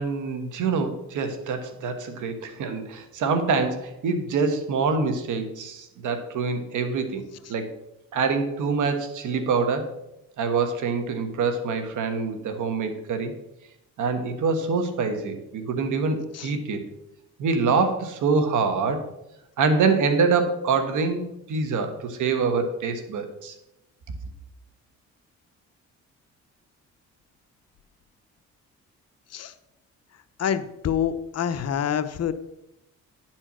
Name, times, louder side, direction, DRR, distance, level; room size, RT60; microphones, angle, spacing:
voice 1, 0.0-7.2 7.5-7.7 8.1-9.9 10.4-13.3 14.0-16.8 17.4-19.0 19.6-23.5, right 4 dB, 75° right, 7 dB, 1.3 m, -25 dB
voice 2, 30.4-32.3, left 8 dB, 55° left, 11 dB, 0.7 m, -26 dB
10.0 x 4.4 x 6.2 m, 0.88 s
cardioid pair, 80°, 31 cm